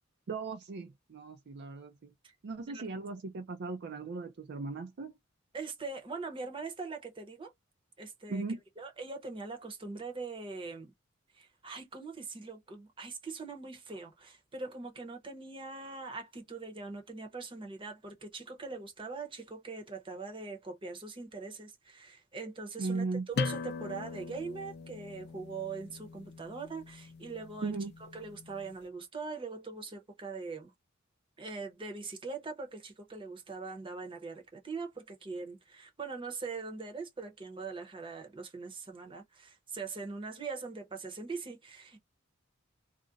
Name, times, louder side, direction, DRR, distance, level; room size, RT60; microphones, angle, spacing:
voice 1, 0.3-2.1 2.4-5.1 8.3-8.6 22.8-23.3 27.6-27.9, right 3 dB, 55° right, 0.4 m, -37 dB
voice 2, 5.5-7.5 8.0-8.4 8.8-10.9 11.3-27.7 28.1-30.7 31.4-42.0, right 4 dB, 25° right, 0.7 m, -42 dB
sound 1, 23.3-28.7, left 4 dB, 55° left, 0.4 m, -41 dB
2.4 x 2.1 x 3.8 m
head